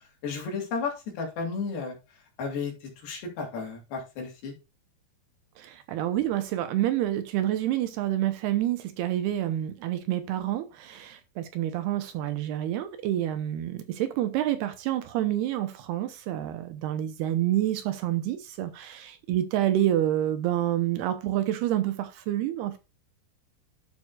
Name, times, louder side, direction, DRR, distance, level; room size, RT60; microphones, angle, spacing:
voice 1, 0.2-2.0 2.4-2.7 3.0-4.5, left 5 dB, 70° left, 4.4 m, -33 dB
voice 2, 5.6-22.8, right 12 dB, 75° right, 2.6 m, -28 dB
11.5 x 6.2 x 2.4 m
omnidirectional pair, 5.0 m